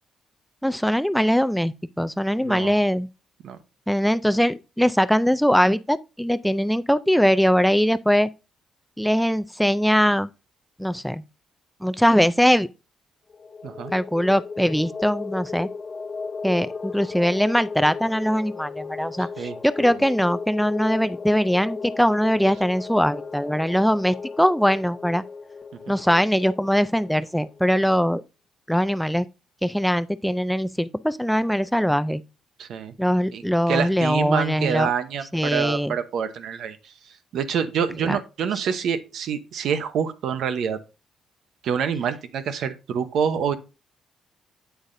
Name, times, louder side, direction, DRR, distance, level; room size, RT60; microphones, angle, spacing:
voice 1, 0.6-3.1 3.9-8.3 9.0-10.3 10.8-11.2 11.8-12.7 13.9-15.7 16.4-19.5 19.8-25.2 25.9-28.2 28.7-29.3 29.6-32.2 33.0-34.9 35.3-35.9 38.0-38.2, equal, ahead, 0.4 m, -21 dB
voice 2, 2.4-2.7 3.4-3.6 13.6-13.9 19.4-19.6 32.6-32.9 33.3-36.9 37.3-40.8 41.6-43.6, right 7 dB, 70° right, 0.8 m, -26 dB
sound 1, 13.3-27.6, left 4 dB, 35° left, 0.9 m, -36 dB
8.1 x 8.0 x 2.6 m
cardioid pair, 90°, 0 cm